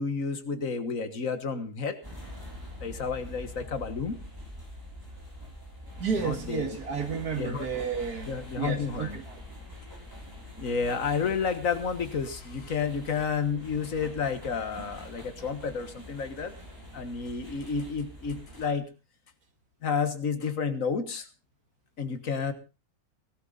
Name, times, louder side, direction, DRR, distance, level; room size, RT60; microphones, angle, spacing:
voice 1, 0.0-1.9 2.8-4.2 6.2-6.8 7.4-7.7 8.3-9.2 10.6-16.5 16.9-18.9 19.8-21.3 22.0-22.5, left 5 dB, 60° left, 1.8 m, -31 dB
sound 1, 2.0-18.7, equal, 15° right, 5.9 m, -45 dB
voice 2, 6.0-9.4, right 6 dB, 80° right, 2.5 m, -32 dB
18.5 x 12.5 x 3.9 m
omnidirectional pair, 1.6 m